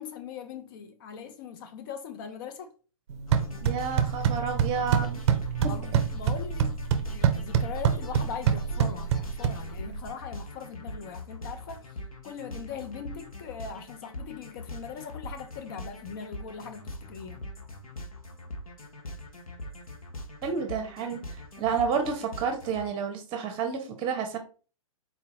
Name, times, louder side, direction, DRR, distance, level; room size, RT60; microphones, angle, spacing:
voice 1, 0.0-2.7 5.6-6.8 7.1-17.5, left 7 dB, 40° left, 0.5 m, -40 dB
sound 1, 3.1-10.1, right 8 dB, 55° right, 0.5 m, -26 dB
sound 2, 3.3-22.9, left 1 dB, 85° left, 1.0 m, -41 dB
voice 2, 3.6-5.2 5.6-5.7 20.4-24.4, right 6 dB, 30° right, 0.9 m, -30 dB
4.2 x 2.7 x 2.6 m
figure-of-eight pair, 120°, 18 cm